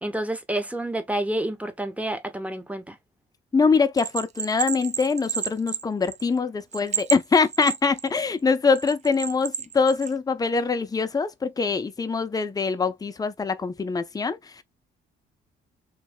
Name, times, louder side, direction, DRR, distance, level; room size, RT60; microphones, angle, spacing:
voice 1, 0.0-3.0, right 1 dB, 5° right, 0.9 m, -29 dB
voice 2, 3.5-14.6, left 4 dB, 20° left, 0.6 m, -24 dB
Bell, 4.0-6.4 6.7-8.2 8.7-10.1, right 8 dB, 35° right, 0.5 m, -31 dB
3.1 x 2.6 x 3.5 m
cardioid pair, 90°, 20 cm